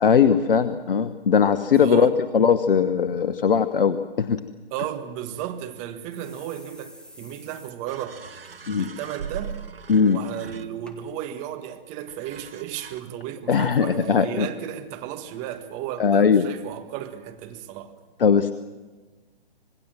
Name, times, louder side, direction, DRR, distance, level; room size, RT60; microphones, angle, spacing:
voice 1, 0.0-4.4 8.7-8.9 9.9-10.2 13.5-14.5 16.0-16.5 18.2-18.5, left 6 dB, 65° left, 11 dB, 1.1 m, -19 dB
voice 2, 1.8-2.2 4.7-8.2 8.7-9.5 10.1-17.9, right 11 dB, 25° right, 7 dB, 1.7 m, -34 dB
sound 1, 5.6-5.7 6.1-7.7 8.1-8.2 8.4-8.9 9.2-9.5 10.2-10.3 10.9-11.0 11.7-11.8, equal, 5° left, 1.7 m, -49 dB
sound 2, 7.9-11.1 12.1-13.0, right 6 dB, 75° right, 1.6 m, -40 dB
26.5 x 20.5 x 7.7 m, 1.3 s
figure-of-eight pair, 130°, 29 cm